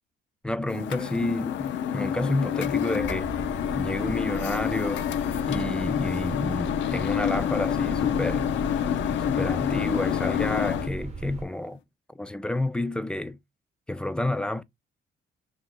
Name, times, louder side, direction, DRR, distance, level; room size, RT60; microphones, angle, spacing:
voice 1, 0.4-3.3 3.8-5.1 5.5-8.5 9.3-11.8 12.2-13.4 13.9-14.6, left 1 dB, 5° left, 0.3 m, -29 dB
sound 1, 0.7-10.9, left 10 dB, 70° left, 0.5 m, -28 dB
sound 2, 3.0-11.4, right 4 dB, 35° right, 0.8 m, -38 dB
3.0 x 2.4 x 4.1 m
cardioid pair, 90°, 20 cm